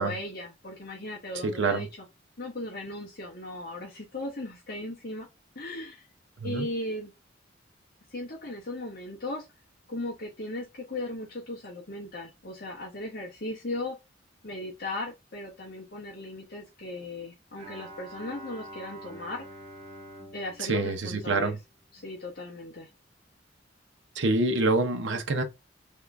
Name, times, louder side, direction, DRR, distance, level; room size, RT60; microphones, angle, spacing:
voice 1, 0.0-1.9 2.4-5.3 5.5-6.0 6.4-7.1 8.1-9.5 9.9-14.0 14.4-19.5 20.3-21.5 21.9-22.9, left 2 dB, 55° left, 1.6 m, -37 dB
voice 2, 1.4-1.9 6.4-6.7 20.6-21.6 24.1-25.4, right 3 dB, 75° right, 0.8 m, -26 dB
Bowed string instrument, 17.6-22.0, right 1 dB, 40° right, 1.6 m, -46 dB
3.7 x 3.5 x 3.4 m
head